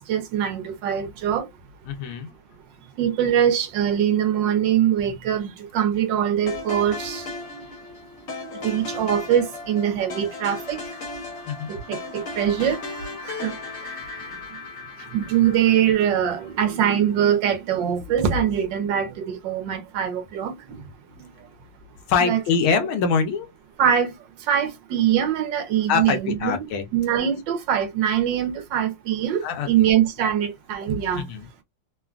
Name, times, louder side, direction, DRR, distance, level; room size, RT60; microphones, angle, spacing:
voice 1, 0.1-1.5 3.0-7.3 8.6-10.8 11.7-12.8 13.2-13.5 13.8-13.9 15.1-20.8 22.2-22.4 23.8-24.1 24.5-26.6 26.9-31.2, right 9 dB, 70° right, 1.3 m, -23 dB
voice 2, 1.9-2.3 11.5-11.7 22.1-23.5 25.9-26.8 29.4-29.7 31.1-31.5, left 6 dB, 80° left, 1.5 m, -23 dB
sound 1, 6.5-16.7, left 3 dB, 40° left, 1.1 m, -36 dB
3.7 x 2.2 x 2.3 m
omnidirectional pair, 2.3 m